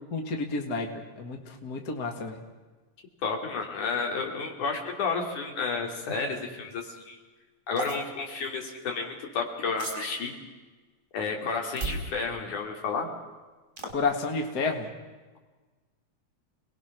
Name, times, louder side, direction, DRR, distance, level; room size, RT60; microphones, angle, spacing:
voice 1, 0.1-0.9 1.2-2.4 13.9-14.9, left 3 dB, 35° left, 3 dB, 2.1 m, -30 dB
voice 2, 3.2-7.2 7.7-10.4 11.1-13.1, left 4 dB, 75° left, 1 dB, 4.3 m, -31 dB
sound 1, 7.8-8.0 9.8-10.2 11.8-12.0 13.8-13.9, right 3 dB, 25° right, 4.3 m, -33 dB
29.5 x 20.5 x 6.1 m, 1.3 s
omnidirectional pair, 3.6 m